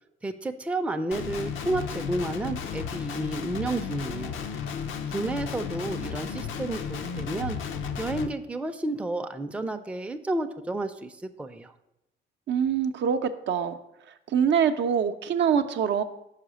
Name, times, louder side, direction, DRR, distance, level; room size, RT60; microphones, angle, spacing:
voice 1, 0.2-4.4 5.1-7.6 8.0-11.7, right 2 dB, 5° right, 6 dB, 0.4 m, -31 dB
Guitar, 1.1-8.3, left 6 dB, 80° left, 0.6 m, -34 dB
voice 2, 12.5-13.8 14.3-16.0, right 7 dB, 65° right, 8 dB, 0.5 m, -24 dB
5.8 x 4.8 x 6.2 m, 0.86 s
cardioid pair, 90°, 20 cm